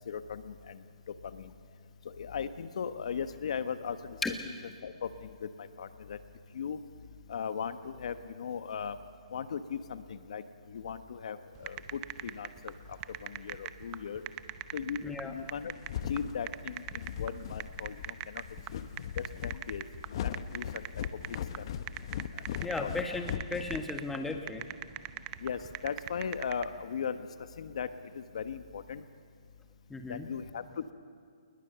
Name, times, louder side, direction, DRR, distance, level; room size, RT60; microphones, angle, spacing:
voice 1, 0.1-0.8 1.3-1.5 2.0-4.2 4.4-4.5 4.8-6.2 6.5-6.8 7.3-9.0 9.3-12.7 13.2-14.2 14.7-15.7 16.1-18.4 18.7-18.9 19.2-19.8 20.2-20.8 21.6-21.7 22.3-22.9 25.4-27.3 27.6-27.9 28.1-29.0 30.1-30.9, left 7 dB, 65° left, 10 dB, 1.2 m, -38 dB
sound 1, 11.6-26.6, right 16 dB, 25° right, 0.7 m, -42 dB
voice 2, 15.0-15.3 22.6-24.6 29.9-30.3, left 3 dB, 5° left, 4 dB, 1.6 m, -35 dB
sound 2, 15.4-24.4, left 9 dB, 45° left, 0.9 m, -39 dB
29.0 x 20.5 x 6.9 m, 2.3 s
hypercardioid pair, 155°, 4 cm